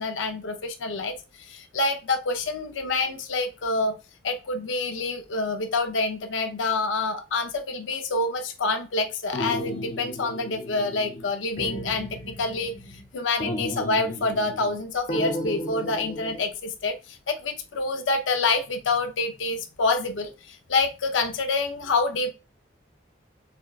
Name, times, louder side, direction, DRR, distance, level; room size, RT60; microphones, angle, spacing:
voice 1, 0.0-4.0 4.2-12.7 13.1-22.3, left 3 dB, 90° left, 7 dB, 0.6 m, -27 dB
sound 1, 9.3-11.3 11.6-13.0 13.4-14.8 15.1-16.4, equal, 45° left, 0.9 m, -33 dB
6.8 x 2.3 x 2.4 m, 0.30 s
head